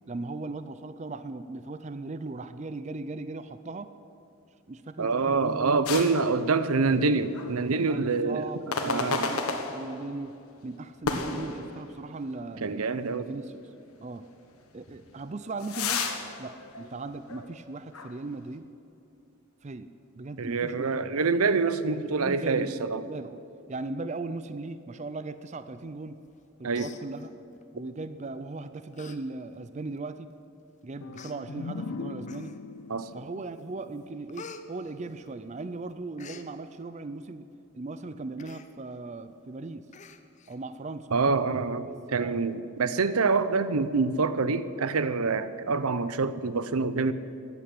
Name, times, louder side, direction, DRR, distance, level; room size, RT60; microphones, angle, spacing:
voice 1, 0.1-3.9 4.7-5.8 6.4-6.5 7.9-9.4 9.7-10.3 10.6-12.9 13.2-13.5 14.0-14.2 14.7-16.1 16.4-18.7 19.6-19.9 20.1-21.2 22.0-23.4 23.7-26.2 26.6-27.3 27.7-30.3 30.8-32.5 33.1-37.5 37.7-39.9 40.5-41.1 42.1-42.4, right 3 dB, 30° right, 0.4 m, -38 dB
voice 2, 5.0-8.4 8.8-9.4 12.6-13.4 20.4-23.0 26.6-26.9 32.9-33.1 41.1-47.1, right 4 dB, 85° right, 0.7 m, -26 dB
sound 1, 5.8-7.1 7.3-7.6 8.7-10.2 11.0-12.2 12.6-12.7 13.4-13.5 14.9-17.6 17.9-18.1, left 4 dB, 85° left, 1.5 m, -33 dB
Human voice, 26.3-26.4 26.7-27.6 28.4-28.5 28.9-29.2 29.6-29.7 30.4-30.5 31.1-31.4 32.2-32.8 33.3-33.6 33.9-35.6 35.9-36.5 38.4-38.7 39.1-39.2 39.4-39.5 39.9-40.6 40.9-41.0, left 4 dB, 35° left, 0.7 m, -47 dB
sound 2, 31.0-34.7, left 4 dB, 70° left, 0.5 m, -40 dB
14.0 x 9.5 x 9.8 m
head